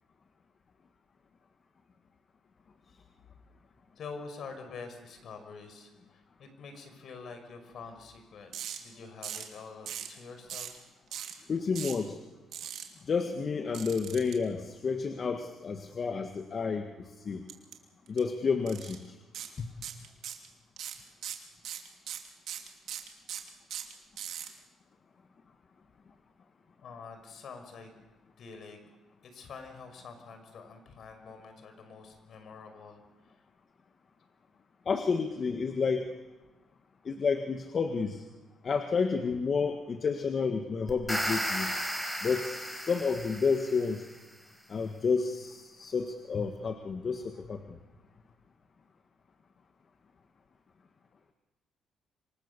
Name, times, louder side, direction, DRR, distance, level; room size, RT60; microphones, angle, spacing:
voice 1, 4.0-8.5 8.8-10.7 26.8-27.9 28.4-28.8 29.2-33.4, left 5 dB, 65° left, 7 dB, 5.6 m, -46 dB
sound 1, 8.5-8.8 9.2-9.5 9.9-10.1 10.5-10.8 11.1-11.3 11.7-12.0 12.5-12.8 13.7-14.3 17.5-17.7 18.1-18.2 18.7-19.0 19.3-19.5 19.8-20.5 20.8-24.5, right 10 dB, 75° right, 2.8 m, -39 dB
voice 2, 11.5-12.2 13.0-17.5 18.1-19.2 19.6-19.7 34.9-36.1 37.0-38.3 38.6-41.7 42.2-44.1 44.7-47.8, left 5 dB, 45° left, 5 dB, 1.8 m, -30 dB
sound 2, 40.9-44.1, equal, 5° left, 5.2 m, -34 dB
26.5 x 25.0 x 7.0 m, 1.1 s
cardioid pair, 90°, 0 cm